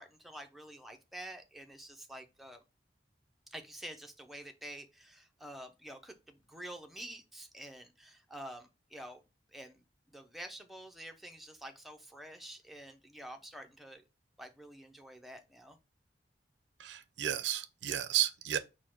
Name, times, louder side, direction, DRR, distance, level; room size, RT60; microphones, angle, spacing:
voice 1, 0.0-2.6 3.5-9.2 9.5-9.8 10.1-14.0 14.4-15.8, right 1 dB, ahead, 0.5 m, -48 dB
voice 2, 16.8-18.6, right 11 dB, 75° right, 0.4 m, -33 dB
4.5 x 2.1 x 4.5 m
head